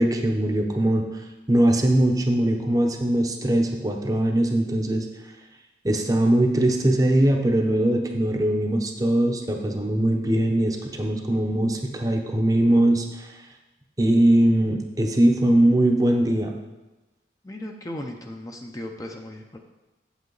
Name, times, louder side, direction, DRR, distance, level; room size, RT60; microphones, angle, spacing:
voice 1, 0.0-5.1 5.8-13.3 14.0-16.5, right 1 dB, 20° right, 3 dB, 0.8 m, -21 dB
voice 2, 17.4-19.6, left 1 dB, 20° left, 2 dB, 0.6 m, -36 dB
8.3 x 8.0 x 3.9 m, 1.1 s
head